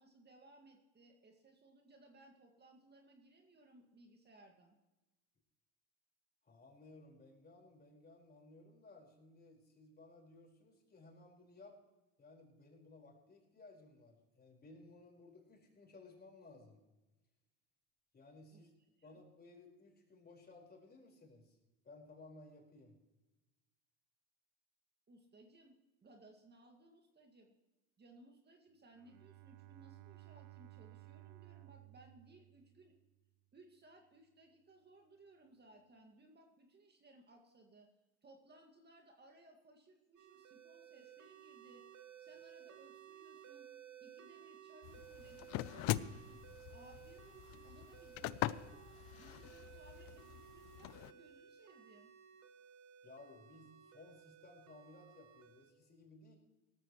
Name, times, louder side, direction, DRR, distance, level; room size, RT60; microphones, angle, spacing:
voice 1, 0.0-4.8 18.5-18.7 19.0-19.1 25.1-27.5 28.0-32.9 33.5-37.9 38.2-41.8 42.2-43.7 44.0-46.4 46.7-52.1, right 2 dB, 30° right, 3 dB, 2.0 m, -63 dB
voice 2, 6.4-11.8 12.2-16.8 18.1-18.7 19.0-21.6 21.8-22.9 53.0-56.4, left 2 dB, 25° left, -1 dB, 4.9 m, -59 dB
Bowed string instrument, 28.9-33.2, right 19 dB, 75° right, 0.8 m, -58 dB
sound 1, 40.2-55.7, right 10 dB, 50° right, 1.6 m, -58 dB
sound 2, 44.8-51.1, left 15 dB, 65° left, 0.6 m, -42 dB
17.5 x 13.5 x 3.2 m, 1.0 s
supercardioid pair, 90°, 36 cm